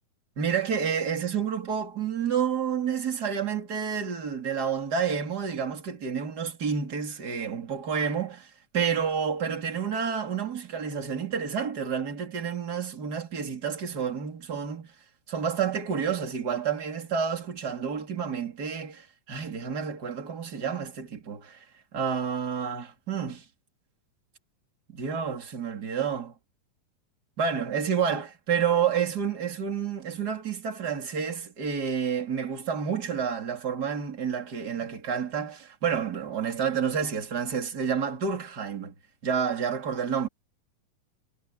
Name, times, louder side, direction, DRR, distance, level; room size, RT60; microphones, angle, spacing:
voice 1, 0.4-14.9 15.3-21.6 21.9-23.4 24.9-26.3 27.4-38.9 39.2-40.3, right 7 dB, 30° right, 3.4 m, -29 dB
omnidirectional pair, 4.0 m